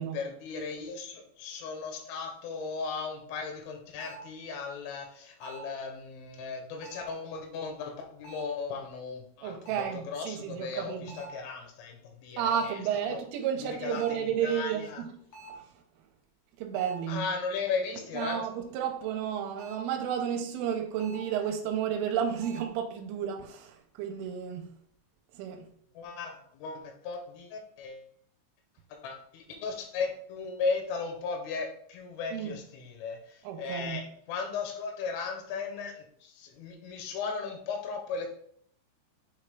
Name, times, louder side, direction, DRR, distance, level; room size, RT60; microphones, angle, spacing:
voice 1, 0.0-12.8 13.1-13.2 13.6-15.0 17.1-18.5 26.0-28.1 28.9-38.4, left 4 dB, 90° left, 3.7 m, -36 dB
sound 1, 4.0-4.3 5.4-5.8 6.8-7.2 8.2-8.6 9.6-10.0 11.1-11.5 12.5-12.9 13.9-14.3 15.3-15.7 16.7-17.1 18.2-18.6 19.6-19.9 21.0-21.4 22.4-22.7, right 2 dB, 70° left, 1.2 m, -46 dB
voice 2, 9.4-11.2 12.4-15.1 15.5-15.8 16.6-17.3 18.1-24.7 25.3-25.7 32.3-32.6 33.4-34.1, right 8 dB, 90° right, 3.1 m, -32 dB
8.2 x 3.3 x 3.5 m
omnidirectional pair, 5.5 m